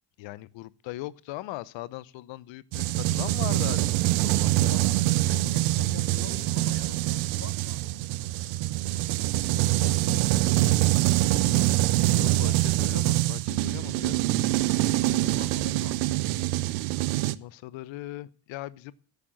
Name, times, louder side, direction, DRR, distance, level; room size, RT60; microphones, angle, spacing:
voice 1, 0.2-4.7 9.2-9.6 12.1-12.5 12.8-14.2 17.3-18.9, left 16 dB, 70° left, 0.9 m, -39 dB
sound 1, 2.7-17.4, right 17 dB, 75° right, 0.7 m, -25 dB
voice 2, 4.6-8.0 9.3-12.6 15.0-16.3, left 5 dB, 30° left, 1.5 m, -45 dB
11.0 x 8.5 x 7.7 m
hypercardioid pair, 50°, 48 cm